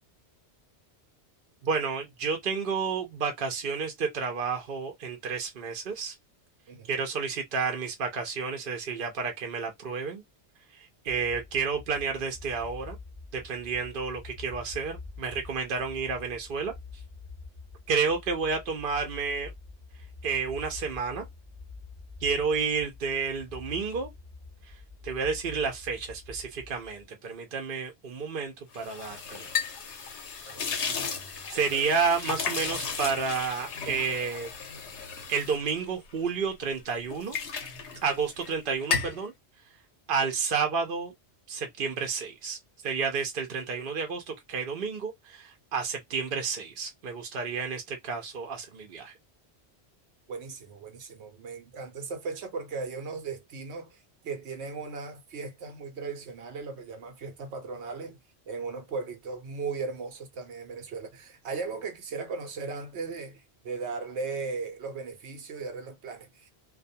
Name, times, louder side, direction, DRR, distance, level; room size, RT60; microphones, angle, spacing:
voice 1, 1.6-6.1 6.9-10.2 10.7-13.0 13.3-16.7 17.9-19.5 20.2-21.3 22.2-24.1 24.7-24.8 25.0-29.5 31.5-34.5 35.3-37.4 38.0-39.3 40.1-41.1 41.5-42.6 42.8-49.1, right 5 dB, 55° right, 0.8 m, -30 dB
sound 1, 11.1-27.0, left 4 dB, ahead, 0.7 m, -46 dB
sound 2, 28.7-36.5 36.9-38.5 38.8-39.2, left 5 dB, 90° left, 1.1 m, -34 dB
voice 2, 30.4-31.9 50.3-58.2 58.5-66.5, right 4 dB, 85° right, 1.0 m, -37 dB
2.5 x 2.3 x 2.6 m
omnidirectional pair, 1.1 m